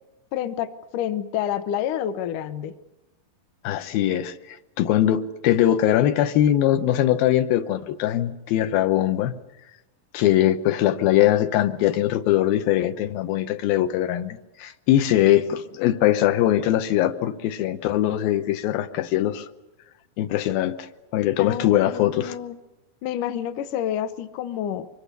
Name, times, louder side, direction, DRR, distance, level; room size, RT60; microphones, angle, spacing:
voice 1, 0.3-2.7 21.4-22.6 23.0-24.9, left 10 dB, 70° left, 11 dB, 2.3 m, -28 dB
voice 2, 3.6-9.3 10.1-19.5 20.2-22.4, left 12 dB, 85° left, 8 dB, 2.8 m, -21 dB
24.5 x 21.5 x 6.8 m, 1.0 s
omnidirectional pair, 4.1 m